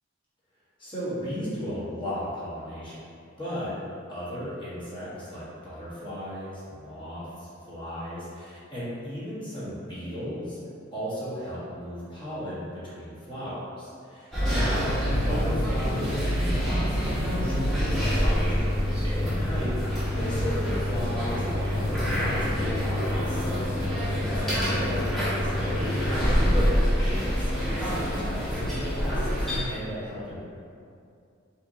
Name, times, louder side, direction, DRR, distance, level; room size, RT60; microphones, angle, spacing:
voice 1, 0.8-3.0 3.4-3.7 4.1-10.6 10.9-30.4, equal, 25° left, -10 dB, 1.1 m, -36 dB
sound 1, 14.3-29.6, equal, ahead, 0.9 m, -26 dB
4.4 x 2.8 x 2.6 m, 2.4 s
head